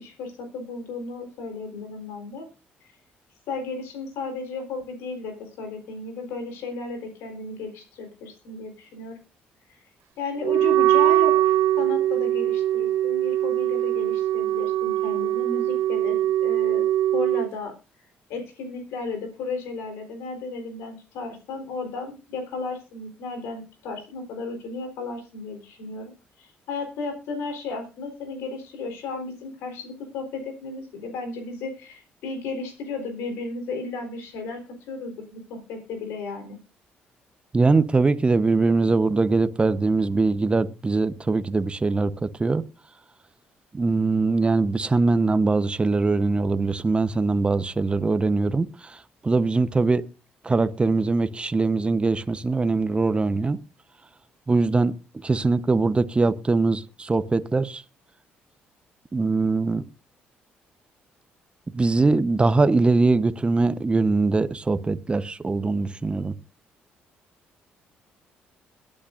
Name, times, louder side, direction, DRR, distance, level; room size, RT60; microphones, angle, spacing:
voice 1, 0.0-2.5 2.8-2.9 3.5-9.2 9.7-9.8 10.2-16.9 17.1-17.7 18.3-26.1 26.4-36.6, left 3 dB, 80° left, 3.9 m, -34 dB
Wind instrument woodwind instrument, 10.4-17.5, right 12 dB, 75° right, 0.7 m, -22 dB
voice 2, 37.5-42.6 43.7-50.0 50.4-53.6 54.5-54.9 55.2-57.8 59.1-59.8 61.7-66.3, right 3 dB, 25° right, 0.9 m, -22 dB
22.0 x 8.7 x 2.5 m
supercardioid pair, 65°, 4 cm